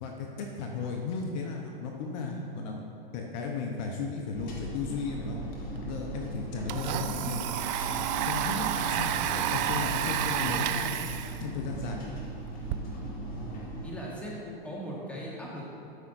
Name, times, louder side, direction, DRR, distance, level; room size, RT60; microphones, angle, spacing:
voice 1, 0.0-2.8 3.1-5.4 5.8-7.5 8.3-11.0 11.4-12.0, left 4 dB, 50° left, 1 dB, 0.9 m, -35 dB
sound 1, 4.3-13.9, right 1 dB, 30° left, 1.6 m, -38 dB
Domestic sounds home sounds, 5.8-5.9 6.1-12.8, right 10 dB, 50° right, 0.5 m, -31 dB
voice 2, 13.4-15.7, right 1 dB, 5° left, -5 dB, 1.5 m, -39 dB
12.5 x 5.7 x 2.6 m, 2.5 s
hypercardioid pair, 125°, 29 cm